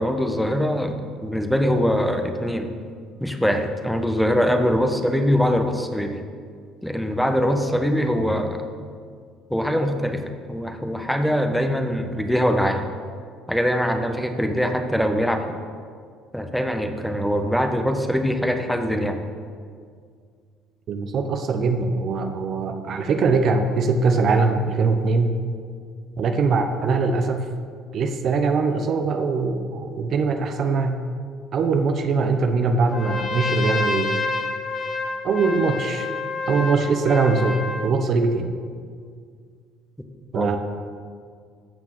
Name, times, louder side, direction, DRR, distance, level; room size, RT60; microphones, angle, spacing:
voice 1, 0.0-2.7 3.2-6.2 6.8-8.6 9.5-12.9 13.5-15.6 16.3-19.2 40.3-40.5, equal, ahead, 6 dB, 1.3 m, -23 dB
voice 2, 20.9-25.4 26.2-27.4 27.9-31.0 31.5-34.1 35.2-36.1 36.5-38.5 40.3-40.6, right 4 dB, 55° right, 6 dB, 1.0 m, -22 dB
Trumpet, 32.9-37.9, left 3 dB, 45° left, 1.5 m, -28 dB
15.5 x 5.9 x 6.2 m, 2.1 s
supercardioid pair, 70°, 0 cm